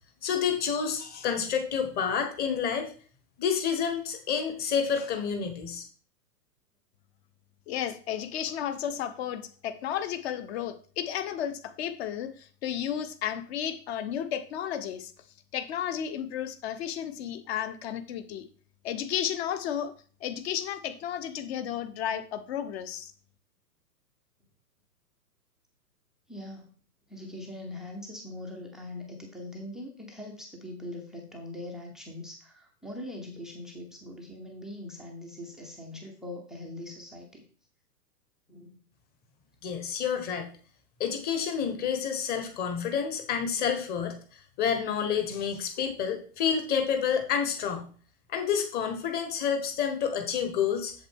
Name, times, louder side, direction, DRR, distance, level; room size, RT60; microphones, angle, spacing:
voice 1, 0.2-2.9 3.4-5.8 39.6-40.5 41.0-44.2 44.6-47.9 48.3-50.9, left 7 dB, 20° left, 6 dB, 1.2 m, -29 dB
voice 2, 7.7-15.1 15.5-18.5 18.8-19.9 20.2-23.1, left 9 dB, 40° left, 11 dB, 1.1 m, -33 dB
voice 3, 26.3-26.7 27.1-37.5 38.5-38.8, left 1 dB, ahead, 1 dB, 0.5 m, -42 dB
7.8 x 7.1 x 3.6 m, 0.42 s
hypercardioid pair, 130°, 49 cm